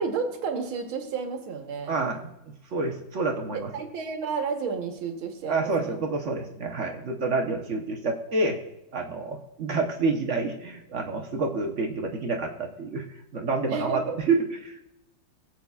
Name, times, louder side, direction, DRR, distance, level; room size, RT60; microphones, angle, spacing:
voice 1, 0.0-2.0 3.5-6.0 13.7-14.2, right 5 dB, 85° right, 5 dB, 2.0 m, -31 dB
voice 2, 1.9-2.2 2.7-3.7 5.5-8.6 8.9-13.0 13.3-14.8, right 3 dB, 50° right, 2 dB, 0.9 m, -28 dB
18.5 x 8.0 x 2.3 m, 0.88 s
omnidirectional pair, 2.2 m